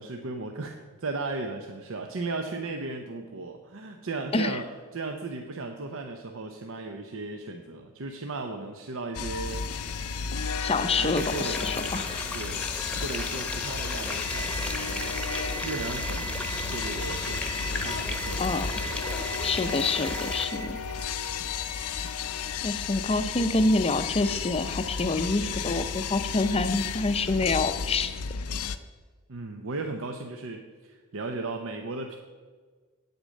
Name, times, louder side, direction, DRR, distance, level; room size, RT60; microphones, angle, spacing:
voice 1, 0.0-4.7 4.9-9.7 11.0-12.7 13.0-15.2 15.6-16.4 16.7-18.5 29.3-32.2, right 3 dB, 65° right, 4 dB, 0.7 m, -36 dB
sound 1, 9.1-28.8, left 6 dB, 80° left, 0.6 m, -33 dB
sound 2, 9.5-27.5, right 3 dB, 35° right, 0.8 m, -44 dB
voice 2, 10.6-12.2 18.4-18.7 19.4-20.8 22.6-28.1, left 3 dB, 25° left, 10 dB, 0.6 m, -27 dB
sound 3, 11.2-20.5, left 1 dB, 5° left, 1.0 m, -35 dB
8.8 x 8.1 x 6.4 m, 1.5 s
head